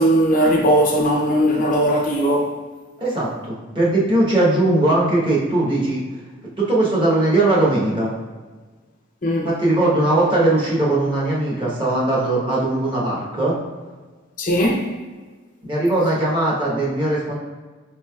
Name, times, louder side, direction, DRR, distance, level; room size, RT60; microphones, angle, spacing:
voice 1, 0.0-2.5 9.2-9.5 14.4-14.9, equal, 40° left, 0.4 m, -18 dB
voice 2, 3.0-6.0 6.6-8.1 9.4-13.5 15.6-17.3, right 2 dB, 25° right, 0.9 m, -19 dB
4.8 x 3.2 x 2.2 m
head